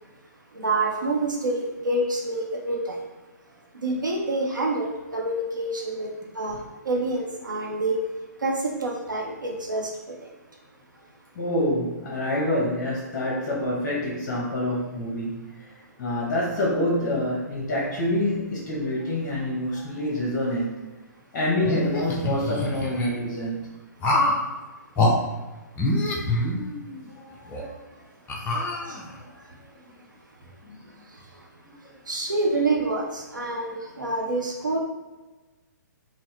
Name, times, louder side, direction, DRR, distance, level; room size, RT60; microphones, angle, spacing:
voice 1, 0.5-3.0 3.7-6.1 6.3-6.6 6.8-8.0 8.4-9.9 28.9-29.0 32.1-34.8, right 2 dB, 90° right, -1 dB, 0.8 m, -27 dB
voice 2, 11.3-20.8 21.3-23.7 27.1-27.8 28.5-29.2 30.6-30.9, left 1 dB, 35° left, -4 dB, 0.9 m, -27 dB
sound 1, 21.6-23.1 24.0-24.4 25.0-25.1 25.8-27.0 27.5-27.6 28.3-29.2, left 1 dB, 20° left, 0.5 m, -25 dB
4.0 x 2.1 x 3.1 m, 1.1 s
figure-of-eight pair, 130°, 10 cm